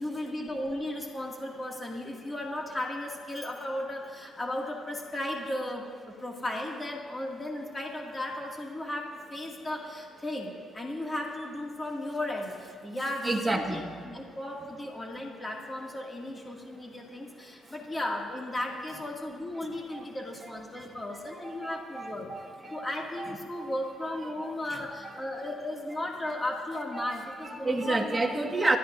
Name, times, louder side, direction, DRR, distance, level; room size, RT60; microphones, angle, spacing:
voice 1, 0.0-5.8 6.2-22.3 22.7-28.2, left 1 dB, 20° left, -1 dB, 2.3 m, -35 dB
voice 2, 13.2-13.9 19.9-20.1 20.7-22.9 23.2-23.7 24.2-24.5 27.0-27.2 27.4-28.8, right 2 dB, 15° right, 1 dB, 1.8 m, -31 dB
28.5 x 13.5 x 2.7 m, 2.2 s
cardioid pair, 90°, 0 cm